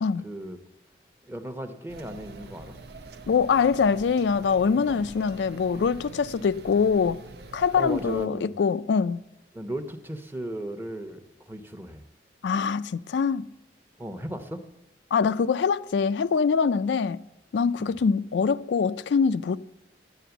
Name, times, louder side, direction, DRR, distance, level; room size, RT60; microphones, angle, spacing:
voice 1, 0.2-0.6 1.2-2.8 4.8-5.1 7.8-8.5 9.5-12.0 14.0-14.6 17.8-18.0, right 1 dB, 10° right, 0.8 m, -36 dB
sound 1, 1.9-8.3, right 3 dB, 60° right, 0.7 m, -44 dB
voice 2, 3.3-7.2 7.5-9.2 12.4-13.5 15.1-17.2 17.5-19.6, left 5 dB, 75° left, 0.4 m, -24 dB
10.0 x 9.2 x 6.9 m
head